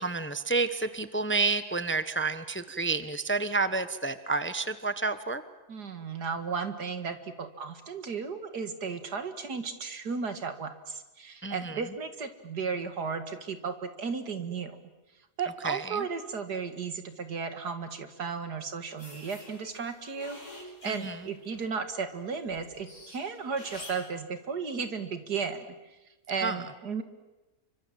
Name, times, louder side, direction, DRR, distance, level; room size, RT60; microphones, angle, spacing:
voice 1, 0.0-5.4 11.4-11.8 15.6-16.1 20.8-21.2 26.4-26.6, right 3 dB, 10° left, 12 dB, 0.8 m, -30 dB
voice 2, 5.7-14.8 15.4-25.7 26.3-27.0, right 5 dB, 85° right, 9 dB, 2.6 m, -34 dB
sound 1, 19.0-21.9 22.3-24.1, left 1 dB, 50° left, 6.9 m, -47 dB
29.0 x 25.0 x 7.6 m, 1.1 s
omnidirectional pair, 1.7 m